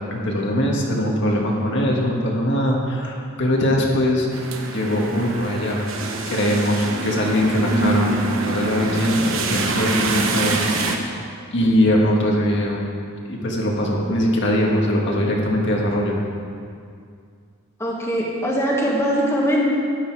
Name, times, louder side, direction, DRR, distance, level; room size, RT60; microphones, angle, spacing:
voice 1, 0.1-4.3 4.7-5.9 6.3-11.0 11.5-12.8 13.3-16.2, equal, 55° left, -2 dB, 1.7 m, -21 dB
sound 1, 4.3-11.0, right 3 dB, 70° right, 1.1 m, -25 dB
voice 2, 17.8-19.7, equal, 15° left, -4 dB, 1.5 m, -21 dB
13.0 x 9.7 x 4.7 m, 2.3 s
head